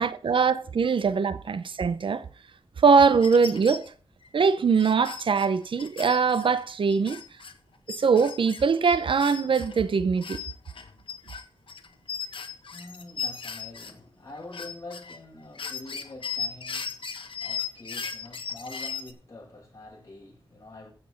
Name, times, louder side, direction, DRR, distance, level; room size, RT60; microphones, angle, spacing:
voice 1, 0.0-2.3 2.8-3.9 4.3-7.2 8.0-10.4, right 5 dB, 70° right, 0.7 m, -22 dB
sound 1, 3.2-3.9 4.2-4.3 4.7-7.5 7.9-9.8 10.2-13.9 14.3-15.2 15.5-19.1, left 6 dB, 70° left, 1.3 m, -37 dB
voice 2, 12.7-20.9, left 2 dB, 35° left, 7.0 m, -45 dB
14.5 x 6.0 x 5.1 m
wide cardioid pair, 100°, 9 cm